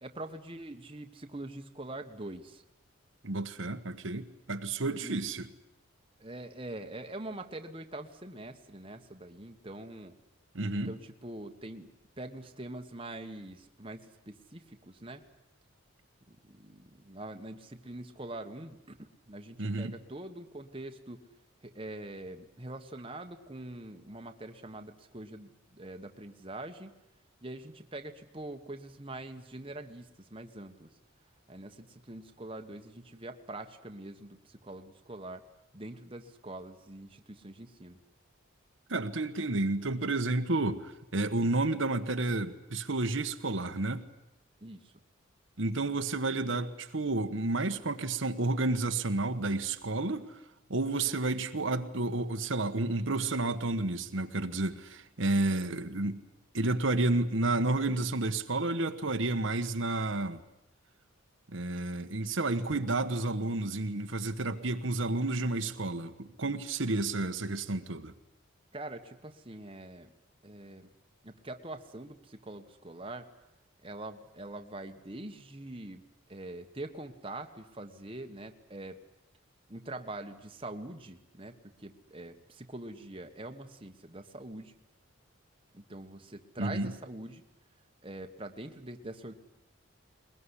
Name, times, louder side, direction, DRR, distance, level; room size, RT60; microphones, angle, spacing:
voice 1, 0.0-2.6 4.9-5.2 6.2-10.2 10.7-15.3 16.3-21.2 21.6-26.9 27.4-30.9 31.5-35.4 35.7-38.0 44.6-44.9 68.7-70.1 70.4-70.9 71.2-73.3 73.8-76.0 76.3-79.0 79.7-84.7 85.7-87.4 88.0-89.3, right 2 dB, 25° right, 1.4 m, -44 dB
voice 2, 3.2-5.5 10.5-10.9 19.6-19.9 38.9-44.1 45.6-50.4 50.7-56.2 56.5-60.4 61.5-68.1 86.6-86.9, right 2 dB, 65° right, 1.3 m, -31 dB
21.5 x 21.5 x 9.9 m
head